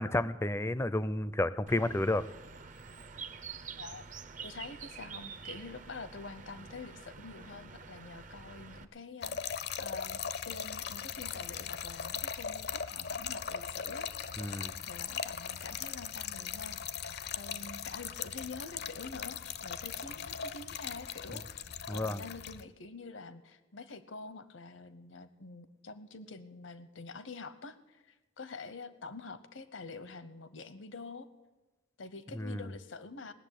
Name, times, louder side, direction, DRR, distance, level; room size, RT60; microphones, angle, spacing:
voice 1, 0.0-2.2 14.4-14.7 21.9-22.2 32.3-32.7, left 1 dB, 15° left, 16 dB, 0.5 m, -31 dB
Bird, 1.7-8.9, right 6 dB, 40° right, 0.6 m, -47 dB
voice 2, 4.4-14.1 14.9-31.3 32.0-33.3, left 3 dB, 80° left, 14 dB, 0.9 m, -47 dB
Trickle dribble / Fill (with liquid), 9.2-22.6, left 7 dB, 55° left, 0.6 m, -39 dB
18.0 x 7.0 x 10.0 m, 1.1 s
head